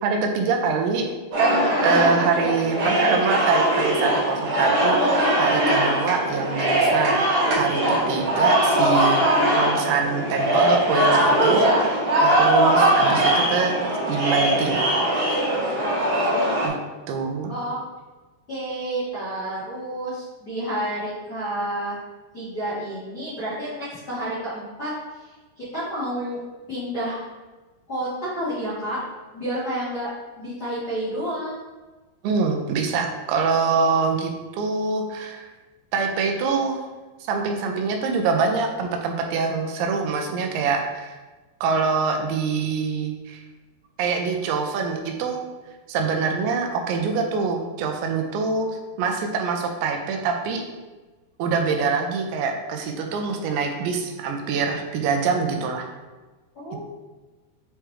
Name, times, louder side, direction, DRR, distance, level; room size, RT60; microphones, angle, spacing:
voice 1, 0.0-1.0 1.4-9.3 9.5-13.8 14.1-14.8 16.6-16.8 17.1-17.5 32.2-35.5 35.9-36.8 37.2-41.2 41.6-43.4 44.0-45.4 45.9-48.7 49.0-50.6 51.4-55.9, right 5 dB, 90° right, 3 dB, 2.9 m, -24 dB
sound 1, 1.3-16.7, right 1 dB, 50° right, 1.6 m, -21 dB
voice 2, 1.7-2.5 2.9-3.2 15.7-16.0 16.3-16.5 17.5-17.8 18.5-22.0 22.3-24.9 25.6-26.4 26.7-27.2 27.9-29.0 29.3-30.1 30.4-31.6 56.5-56.8, right 1 dB, 85° left, -12 dB, 0.8 m, -30 dB
8.6 x 3.3 x 3.2 m, 1.2 s
omnidirectional pair, 5.2 m